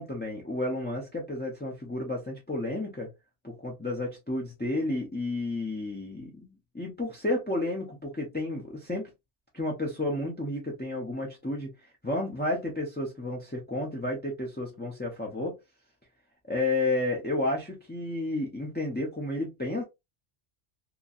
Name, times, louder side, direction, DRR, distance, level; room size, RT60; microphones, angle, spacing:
voice 1, 0.0-3.1 3.4-9.1 9.5-11.7 12.0-15.6 16.5-19.8, left 2 dB, 15° left, 0.3 m, -31 dB
2.9 x 2.6 x 2.4 m
omnidirectional pair, 1.2 m